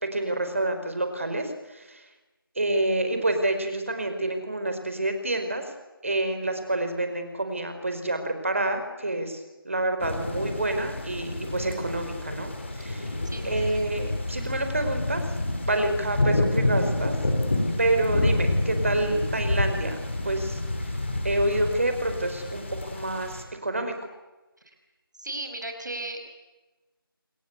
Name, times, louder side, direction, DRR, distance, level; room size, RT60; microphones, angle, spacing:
voice 1, 0.0-2.0 2.5-5.7 6.0-15.3 15.6-17.2 17.8-20.0 20.2-20.9 21.2-24.0, right 2 dB, 35° right, 7 dB, 5.0 m, -28 dB
sound 1, 10.0-23.4, left 2 dB, 30° left, 4.7 m, -28 dB
voice 2, 13.2-13.8 24.6-24.7 25.2-26.2, right 1 dB, 50° right, 5 dB, 5.6 m, -36 dB
28.5 x 21.5 x 8.3 m, 1.1 s
figure-of-eight pair, 175°, 12 cm